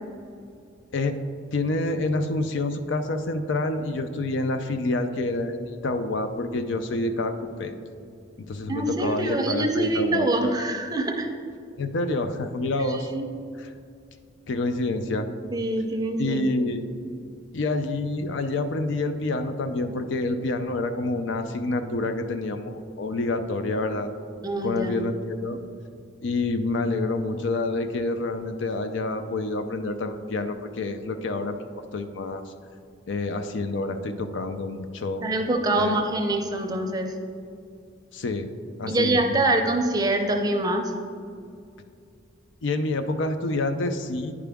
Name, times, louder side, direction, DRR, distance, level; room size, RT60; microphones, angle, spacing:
voice 1, 1.5-7.7 8.5-10.6 11.8-13.1 13.6-13.7 14.5-15.3 16.2-16.8 17.5-24.1 24.6-25.6 26.2-31.6 31.9-32.4 33.1-35.2 35.7-36.0 38.1-38.5 38.8-39.5 42.6-44.4, left 2 dB, 70° left, 8 dB, 0.5 m, -28 dB
voice 2, 8.7-11.3 12.8-13.3 15.5-16.7 24.4-25.0 35.2-37.1 38.9-40.9, right 2 dB, 20° right, 4 dB, 0.5 m, -25 dB
9.8 x 4.8 x 3.5 m, 2.4 s
head